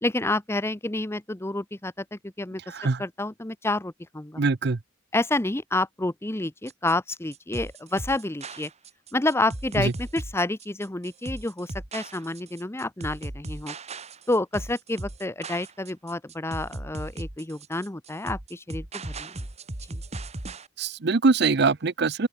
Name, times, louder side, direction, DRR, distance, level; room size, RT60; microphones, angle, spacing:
voice 1, 0.0-2.6 3.0-4.4 5.1-8.7 9.1-13.7 14.3-19.3 19.9-20.0, left 2 dB, 15° left, 0.8 m, -29 dB
voice 2, 2.7-3.0 4.4-4.8 9.8-9.9 20.8-22.3, right 4 dB, 60° right, 0.7 m, -23 dB
sound 1, 6.7-20.7, right 2 dB, 35° right, 1.7 m, -37 dB
open air
head